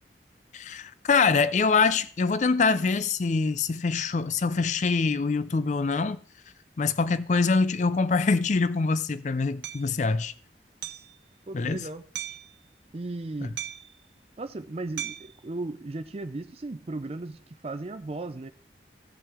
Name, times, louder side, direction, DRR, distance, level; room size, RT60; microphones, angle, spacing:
voice 1, 0.5-6.2 6.8-10.3 11.5-11.8 13.4-13.5, left 4 dB, 45° left, 0.4 m, -24 dB
Hammer, 9.6-9.8 10.8-11.1 12.1-12.5 13.6-14.0 15.0-15.4, right 10 dB, 80° right, 0.6 m, -36 dB
voice 2, 11.5-12.0 12.9-13.6 14.4-18.5, right 2 dB, 35° right, 0.5 m, -36 dB
16.5 x 5.6 x 3.5 m
head